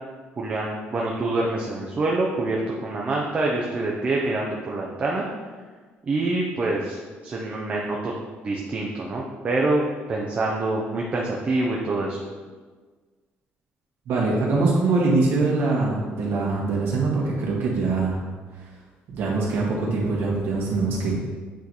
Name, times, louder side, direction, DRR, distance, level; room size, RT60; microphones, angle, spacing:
voice 1, 0.4-5.3 6.1-8.1 8.4-12.2, right 2 dB, 30° right, -2 dB, 0.7 m, -26 dB
voice 2, 14.1-18.2 19.1-21.1, right 3 dB, 65° right, -4 dB, 1.8 m, -23 dB
8.2 x 3.1 x 4.1 m, 1.4 s
cardioid pair, 135°, 4 cm